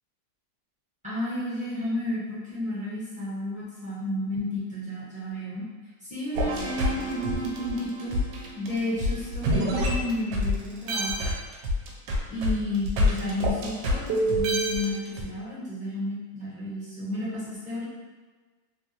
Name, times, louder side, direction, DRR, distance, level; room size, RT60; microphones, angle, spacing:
voice 1, 1.0-5.6 6.0-8.2 8.6-11.3 12.3-17.8, left 1 dB, 5° right, -10 dB, 0.9 m, -32 dB
sound 1, 6.3-10.5 10.9-15.2, equal, 75° right, 1.2 m, -27 dB
3.4 x 2.5 x 2.8 m, 1.3 s
omnidirectional pair, 2.0 m